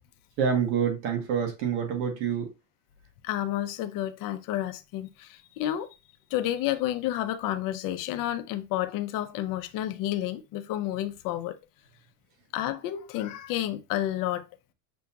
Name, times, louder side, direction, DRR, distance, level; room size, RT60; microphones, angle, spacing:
voice 1, 0.4-2.5, right 7 dB, 80° right, 1.5 m, -27 dB
voice 2, 3.2-5.9 6.3-11.5 12.5-14.4, left 13 dB, 55° left, 0.6 m, -30 dB
6.1 x 2.9 x 2.3 m
cardioid pair, 150°, 40 cm